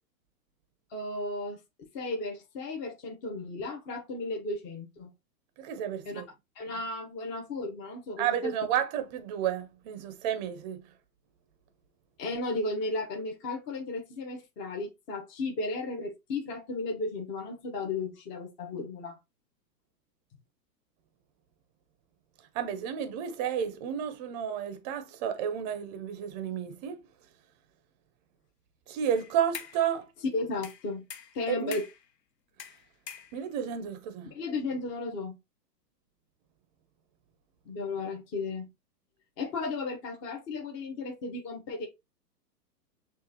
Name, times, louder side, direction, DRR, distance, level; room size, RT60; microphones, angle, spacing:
voice 1, 0.9-1.6 1.9-5.1 6.1-6.2 6.6-8.5 12.2-19.2 30.3-31.0 31.3-31.8 34.3-35.4 37.7-38.7 39.4-41.9, left 3 dB, 25° left, 0.9 m, -34 dB
voice 2, 5.6-6.3 8.2-10.9 22.5-27.0 28.9-30.1 31.5-31.8 33.3-34.3, right 9 dB, 25° right, 0.7 m, -31 dB
sound 1, 29.2-29.9 30.6-32.1 32.6-33.7, left 7 dB, 75° left, 1.1 m, -44 dB
6.5 x 2.5 x 2.8 m
hypercardioid pair, 140°, 50 cm